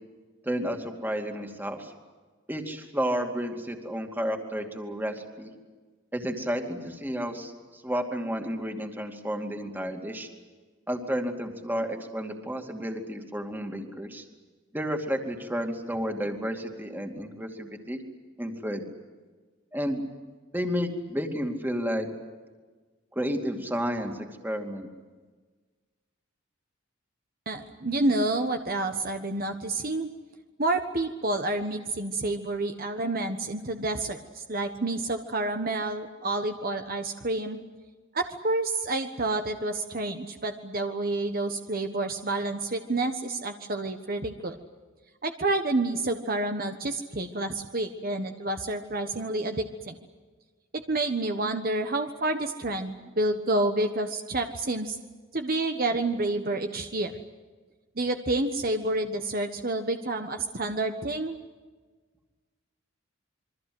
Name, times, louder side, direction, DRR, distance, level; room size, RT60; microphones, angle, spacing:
voice 1, 0.4-1.9 2.5-5.5 6.1-10.3 10.9-14.2 14.7-18.0 18.4-18.8 19.7-20.0 20.5-22.1 23.1-24.2 24.4-24.9, equal, 10° right, 4 dB, 2.6 m, -31 dB
voice 2, 27.4-30.1 30.6-37.6 38.1-44.5 45.2-50.0 50.7-55.0 55.3-57.1 58.0-61.4, right 2 dB, 45° right, 6 dB, 1.3 m, -29 dB
27.5 x 23.5 x 7.9 m, 1.4 s
head